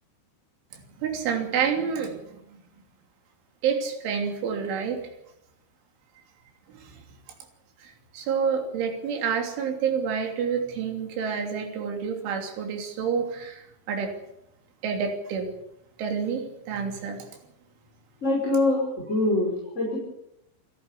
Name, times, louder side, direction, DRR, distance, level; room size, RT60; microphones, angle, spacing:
voice 1, 1.0-2.6 3.6-5.0 6.7-7.0 7.8-14.1 14.8-15.5 16.0-17.3, right 6 dB, 85° right, 4 dB, 5.5 m, -28 dB
voice 2, 18.2-20.0, left 2 dB, 15° left, -3 dB, 5.6 m, -24 dB
28.5 x 12.0 x 8.4 m, 0.83 s
omnidirectional pair, 5.4 m